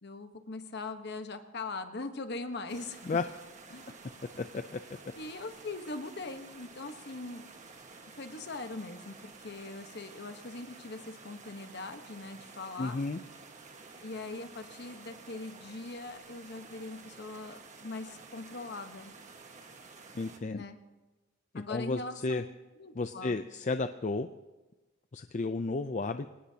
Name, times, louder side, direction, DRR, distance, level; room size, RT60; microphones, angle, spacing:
voice 1, 0.0-3.0 3.7-3.9 5.2-7.5 8.1-13.0 14.0-19.1 20.5-20.8 21.5-22.4 22.8-23.4, left 3 dB, 55° left, 7 dB, 1.2 m, -41 dB
sound 1, 2.7-20.4, right 4 dB, 35° right, 1.5 m, -51 dB
voice 2, 4.4-4.8 12.8-13.2 20.1-20.6 21.5-22.4 22.9-24.3 25.1-26.3, left 3 dB, 35° left, 9 dB, 0.5 m, -33 dB
25.0 x 18.5 x 2.8 m, 1.2 s
head